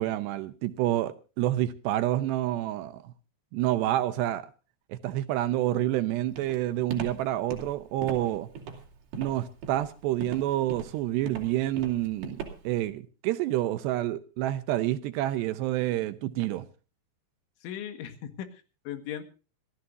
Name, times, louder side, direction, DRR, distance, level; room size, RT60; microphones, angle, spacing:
voice 1, 0.0-3.1 3.5-4.5 4.9-8.5 9.2-16.7, right 14 dB, 75° right, 2.7 m, -28 dB
Walk footsteps, 6.4-12.8, right 4 dB, 60° right, 4.6 m, -39 dB
voice 2, 17.6-19.2, left 10 dB, 80° left, 4.1 m, -38 dB
26.0 x 14.5 x 2.6 m
omnidirectional pair, 5.3 m